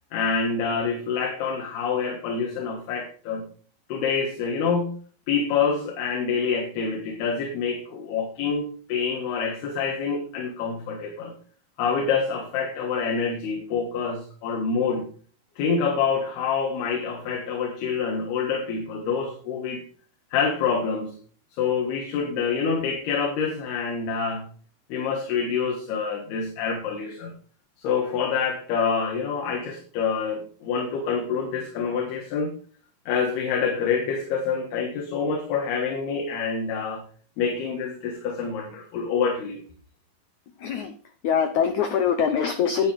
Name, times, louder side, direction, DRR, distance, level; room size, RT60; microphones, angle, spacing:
voice 1, 0.1-3.5 3.9-5.0 5.3-11.3 11.8-15.1 15.6-19.8 20.3-21.2 21.6-24.5 24.9-27.3 27.8-32.5 33.1-37.0 37.4-39.6, left 5 dB, 70° left, 2 dB, 3.6 m, -26 dB
voice 2, 40.6-40.9 41.2-42.9, left 7 dB, 90° left, 8 dB, 1.6 m, -23 dB
11.0 x 10.5 x 5.0 m, 0.42 s
omnidirectional pair, 4.8 m